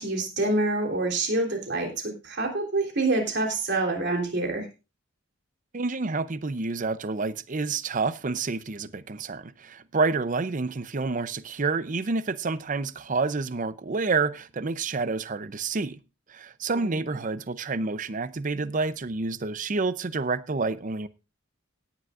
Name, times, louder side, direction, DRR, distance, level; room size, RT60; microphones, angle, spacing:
voice 1, 0.0-4.7 16.7-17.0, right 2 dB, 55° right, 3.4 m, -27 dB
voice 2, 5.7-16.0 16.3-21.1, right 4 dB, 40° right, 0.6 m, -28 dB
17.5 x 10.5 x 2.4 m
head